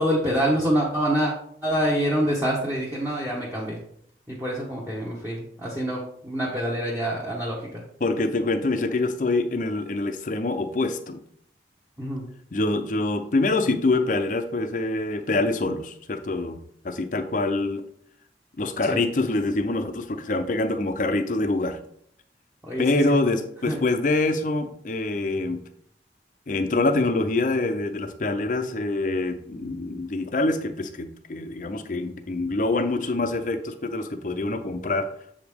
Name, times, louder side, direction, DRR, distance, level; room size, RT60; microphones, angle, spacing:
voice 1, 0.0-1.3 1.6-3.8 4.3-7.8 12.0-12.2 18.9-19.0 22.6-23.1 23.6-23.8, equal, 10° right, -6 dB, 1.0 m, -26 dB
voice 2, 8.0-11.2 12.5-16.6 16.8-17.8 18.6-21.8 22.8-25.6 26.5-35.1, left 2 dB, 45° left, 8 dB, 0.6 m, -25 dB
7.2 x 5.0 x 3.6 m, 0.67 s
head